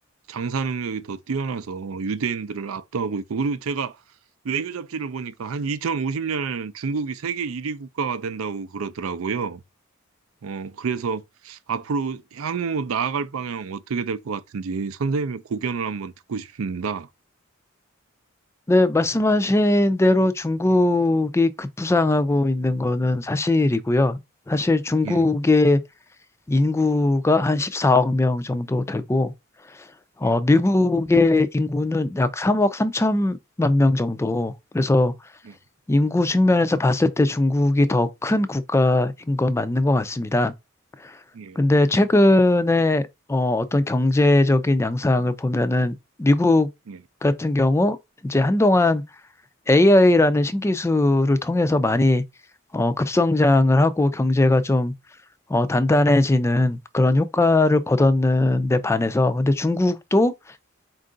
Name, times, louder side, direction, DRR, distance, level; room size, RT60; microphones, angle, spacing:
voice 1, 0.3-4.0 4.4-9.6 10.4-17.1 25.0-25.3 30.2-30.4 35.4-35.5 41.3-41.6 46.9-47.0, right 5 dB, 80° right, 0.5 m, -28 dB
voice 2, 18.7-24.2 24.5-25.8 26.5-29.3 30.2-35.1 35.9-40.5 41.0-41.1 41.6-43.0 43.3-46.7 47.2-48.0 48.2-49.0 49.7-52.2 52.7-54.9 55.5-60.3, left 2 dB, 15° left, 0.3 m, -19 dB
4.5 x 2.5 x 3.8 m
head